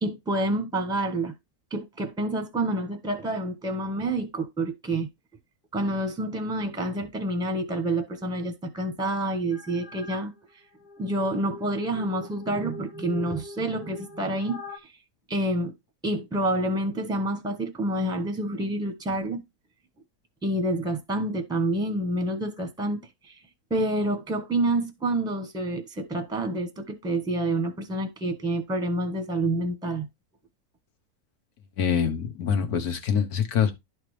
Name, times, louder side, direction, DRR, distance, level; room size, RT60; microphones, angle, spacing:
voice 1, 0.0-1.3 1.7-5.1 5.7-10.3 11.0-14.9 15.3-15.7 16.0-19.4 20.4-23.0 23.3-23.4 23.7-30.1, right 1 dB, 5° right, 1.0 m, -28 dB
sound 1, 9.5-10.3 10.8-14.8, left 2 dB, 40° left, 0.8 m, -42 dB
voice 2, 31.8-33.7, left 7 dB, 80° left, 1.6 m, -25 dB
11.5 x 4.3 x 3.3 m
omnidirectional pair, 1.6 m